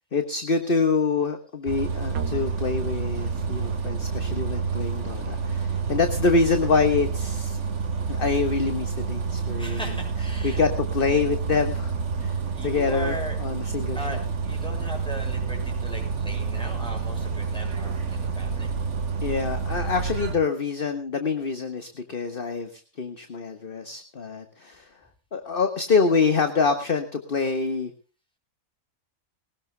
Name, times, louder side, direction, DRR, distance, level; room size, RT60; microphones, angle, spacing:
voice 1, 0.1-7.6 8.1-9.8 10.4-11.9 12.2-12.4 12.6-14.2 19.2-24.8 25.3-27.9, left 4 dB, 40° left, 7 dB, 1.5 m, -26 dB
Bus, 1.7-20.3, right 5 dB, 55° right, 1.7 m, -29 dB
sound 1, 2.1-20.1, right 5 dB, 85° right, 1.5 m, -37 dB
voice 2, 9.6-10.7 12.5-13.4 13.9-18.7, equal, 5° left, 1 dB, 7.0 m, -38 dB
20.5 x 19.5 x 2.3 m, 0.36 s
omnidirectional pair, 1.5 m